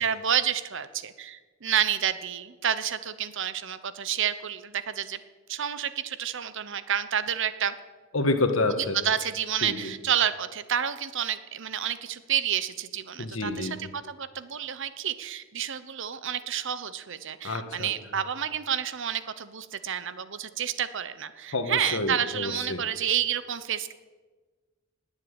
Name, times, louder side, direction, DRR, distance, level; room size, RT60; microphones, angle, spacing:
voice 1, 0.0-5.2 5.5-7.7 8.9-23.9, right 9 dB, 65° right, 13 dB, 0.9 m, -29 dB
voice 2, 8.1-9.0 9.6-9.9 13.2-13.9 17.4-17.9 21.5-22.8, left 2 dB, 75° left, 7 dB, 1.6 m, -28 dB
19.5 x 7.4 x 9.0 m, 1.3 s
head